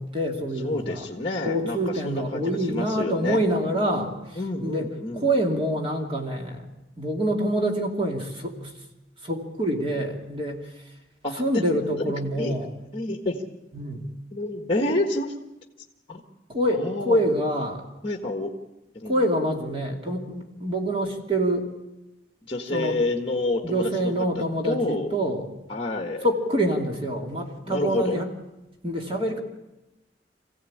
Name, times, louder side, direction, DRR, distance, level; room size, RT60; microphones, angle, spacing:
voice 1, 0.0-1.1 1.4-4.9 5.1-6.7 7.0-8.7 9.2-10.7 11.3-12.7 13.7-14.1 16.5-17.8 19.0-21.7 22.7-23.0 23.6-25.5 26.2-28.3 28.8-29.4, right 1 dB, 30° right, 1 dB, 2.7 m, -26 dB
voice 2, 0.6-3.4 4.4-5.3 11.2-11.4 12.0-12.6 12.9-13.4 14.3-15.3 16.1-16.2 16.7-17.2 18.0-18.5 18.9-19.2 22.4-24.1 24.4-25.1 25.7-26.2 27.7-28.2, left 2 dB, 30° left, 2 dB, 1.6 m, -28 dB
24.5 x 16.0 x 8.7 m, 0.99 s
head